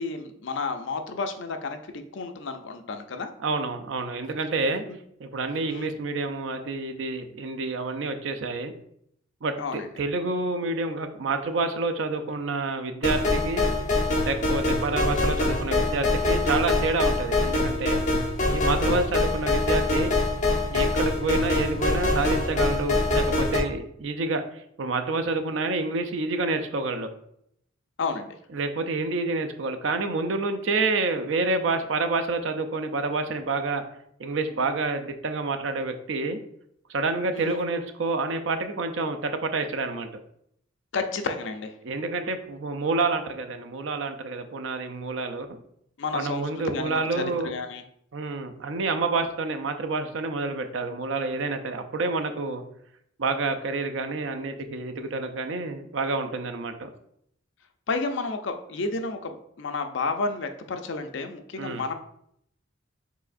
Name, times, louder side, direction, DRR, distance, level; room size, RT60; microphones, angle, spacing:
voice 1, 0.0-3.3 4.9-5.0 5.7-5.9 9.6-9.9 28.0-28.4 37.3-37.6 40.9-41.8 46.0-47.8 57.9-61.9, left 3 dB, 65° left, 7 dB, 0.5 m, -31 dB
voice 2, 3.4-4.8 5.2-8.7 9.4-13.7 14.2-18.0 18.5-20.1 20.7-27.1 28.5-33.8 34.2-36.4 36.9-40.1 41.8-45.5 46.1-47.5 48.1-52.6 53.2-56.9 61.6-61.8, right 3 dB, 70° right, 7 dB, 0.5 m, -28 dB
sound 1, 13.0-23.6, left 2 dB, 35° left, 1.0 m, -24 dB
4.7 x 4.0 x 2.5 m, 0.71 s
head